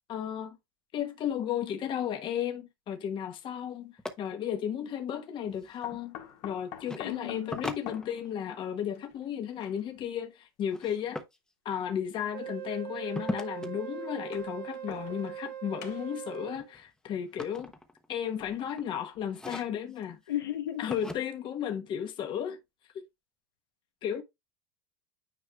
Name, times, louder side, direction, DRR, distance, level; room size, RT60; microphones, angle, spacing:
voice 1, 0.1-0.6 0.9-6.2 6.4-11.2 11.6-17.7 18.1-20.2 20.8-22.6 24.0-24.2, left 9 dB, 40° left, 1.3 m, -34 dB
sound 1, 3.4-3.5 5.8-10.1 11.1-11.2 12.4-12.5 14.1-15.5 15.8-16.3 18.1-19.5 20.0-20.1 20.5-20.6, left 11 dB, 65° left, 1.8 m, -48 dB
sound 2, 4.0-4.1 5.4-6.0 6.8-7.0 7.5-8.5 10.7-11.4 13.2-13.7 15.6-15.9 16.3-18.2 18.7-18.9 19.3-20.0 20.9-21.2, left 1 dB, 5° left, 1.0 m, -39 dB
voice 2, 7.0-7.6 20.3-20.9, left 12 dB, 85° left, 1.5 m, -34 dB
Wind instrument woodwind instrument, 12.3-16.7, right 10 dB, 70° right, 1.1 m, -40 dB
9.5 x 4.8 x 2.4 m
hypercardioid pair, 95°, 12 cm